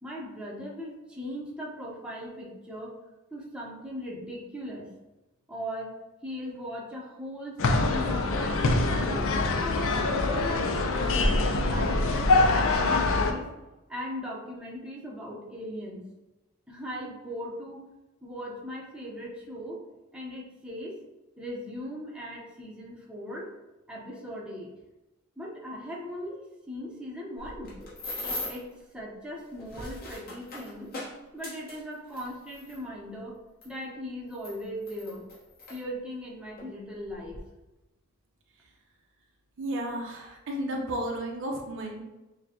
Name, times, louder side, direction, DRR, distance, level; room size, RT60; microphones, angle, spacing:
voice 1, 0.0-3.0 3.3-4.9 5.5-6.0 6.2-9.2 9.6-13.5 13.9-16.0 16.7-17.8 18.2-19.8 20.1-21.0 21.4-23.5 23.9-24.7 25.4-27.8 28.5-30.9 31.3-33.4 33.6-35.2 35.7-37.4, equal, 5° right, -4 dB, 0.7 m, -39 dB
sound 1, 7.6-13.3, left 2 dB, 65° left, 0.5 m, -24 dB
sound 2, 27.4-28.7 29.5-32.8 33.6-33.7 34.3-35.8 36.6-36.7 37.1-37.4, left 2 dB, 45° left, 1.3 m, -39 dB
voice 2, 39.6-42.0, right 1 dB, 60° right, 1 dB, 0.7 m, -33 dB
6.4 x 2.2 x 2.9 m, 1.0 s
head